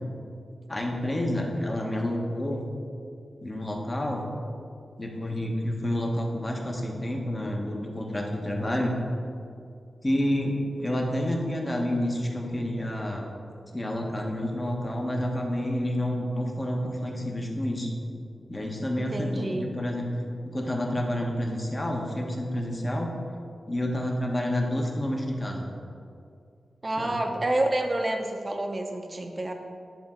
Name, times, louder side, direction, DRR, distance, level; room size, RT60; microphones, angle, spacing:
voice 1, 0.7-2.7 3.4-4.2 5.0-9.0 10.0-13.3 13.7-17.9 18.5-20.0 20.4-23.1 23.7-25.7 27.0-27.2, left 1 dB, 25° left, 0 dB, 1.2 m, -29 dB
voice 2, 19.0-19.7 26.8-29.5, right 1 dB, 30° right, 3 dB, 0.8 m, -28 dB
10.0 x 3.7 x 4.4 m, 2.4 s
wide cardioid pair, 75°, 0 cm